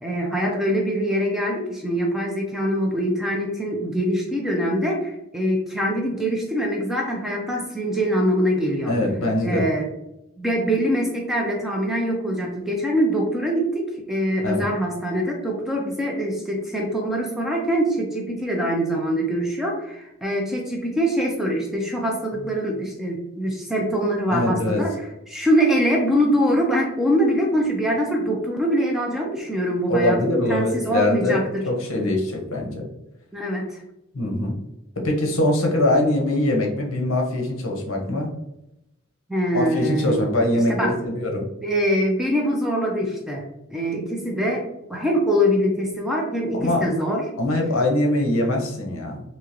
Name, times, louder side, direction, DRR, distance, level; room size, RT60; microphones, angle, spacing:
voice 1, 0.0-8.9 9.4-9.9 10.4-31.6 33.3-33.8 39.3-40.3 40.5-41.0 41.6-43.4 43.7-47.3, equal, ahead, -1 dB, 0.4 m, -23 dB
voice 2, 8.9-9.7 14.4-14.7 22.4-22.5 24.3-24.8 29.9-32.9 34.1-34.6 35.0-38.3 39.5-41.5 46.5-46.8 47.4-49.2, left 1 dB, 65° left, 1 dB, 0.8 m, -23 dB
3.6 x 2.8 x 2.9 m, 0.86 s
head